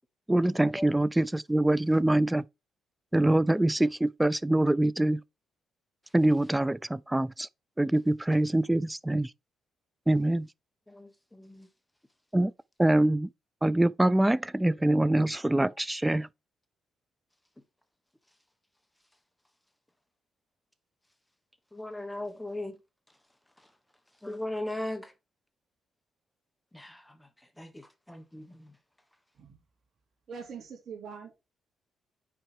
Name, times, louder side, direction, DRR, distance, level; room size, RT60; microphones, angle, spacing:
voice 1, 0.3-2.4 3.1-5.2 6.1-7.5 7.8-9.3 10.1-10.5 12.3-12.5 12.8-13.3 13.6-16.3, right 1 dB, 10° right, 0.3 m, -24 dB
voice 2, 10.9-11.7 21.7-22.8 24.2-25.1 26.7-27.2 27.6-28.7, left 1 dB, 5° left, 1.3 m, -38 dB
voice 3, 30.3-31.3, right 6 dB, 55° right, 3.3 m, -43 dB
6.1 x 4.7 x 4.6 m
cardioid pair, 90°, 0 cm